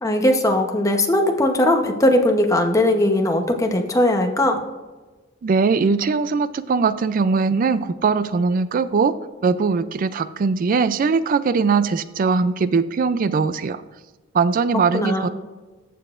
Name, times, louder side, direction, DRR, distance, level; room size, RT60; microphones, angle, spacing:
voice 1, 0.0-4.6 14.9-15.3, left 1 dB, 15° left, 4 dB, 0.9 m, -19 dB
voice 2, 5.4-9.1 9.4-13.8 14.3-15.3, right 5 dB, 45° right, 14 dB, 0.3 m, -20 dB
14.5 x 6.8 x 2.5 m, 1.2 s
head